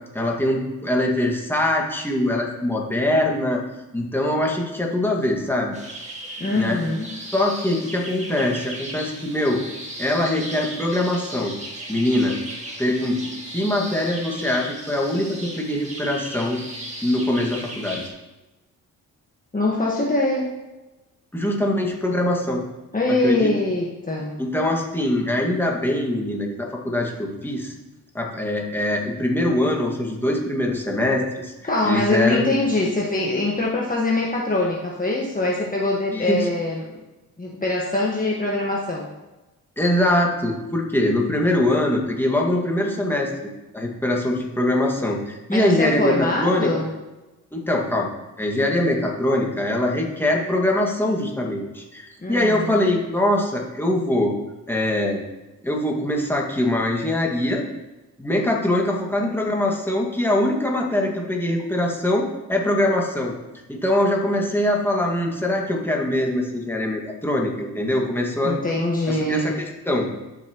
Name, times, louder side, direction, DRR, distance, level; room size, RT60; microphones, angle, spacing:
voice 1, 0.1-3.6 3.9-5.8 6.5-6.8 7.3-9.6 10.0-11.5 11.9-12.4 12.8-13.2 13.5-16.6 17.0-18.1 21.3-22.6 23.2-23.5 24.4-27.7 28.1-31.5 31.8-32.6 36.1-36.5 39.8-43.5 43.7-46.7 47.5-48.1 48.4-54.3 54.7-55.2 55.6-57.6 58.2-63.3 63.7-68.6 69.1-69.5 69.9-70.1, left 1 dB, 5° left, -1 dB, 2.1 m, -23 dB
sound 1, 5.7-18.1, right 1 dB, 15° right, 2.2 m, -36 dB
voice 2, 6.4-7.1 19.5-20.5 22.9-24.3 31.6-36.9 37.4-39.1 45.5-46.9 52.2-52.8 68.4-69.5, left 2 dB, 20° left, -4 dB, 1.7 m, -23 dB
13.0 x 5.9 x 3.1 m, 1.1 s
supercardioid pair, 60°, 40 cm